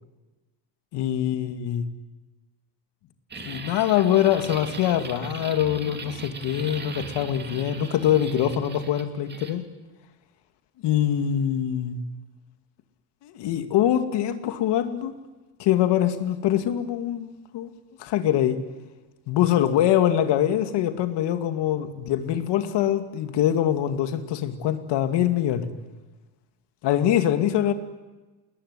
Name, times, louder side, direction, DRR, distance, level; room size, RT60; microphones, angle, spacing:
voice 1, 0.9-1.9 3.4-9.6 10.8-12.0 13.2-15.1 15.6-17.7 18.0-18.6 19.3-25.7 26.8-27.7, left 11 dB, 60° left, 9 dB, 2.6 m, -23 dB
sound 1, 3.3-9.6, right 4 dB, 20° right, 2.7 m, -39 dB
27.5 x 21.0 x 9.9 m, 1.2 s
cardioid pair, 145°, 46 cm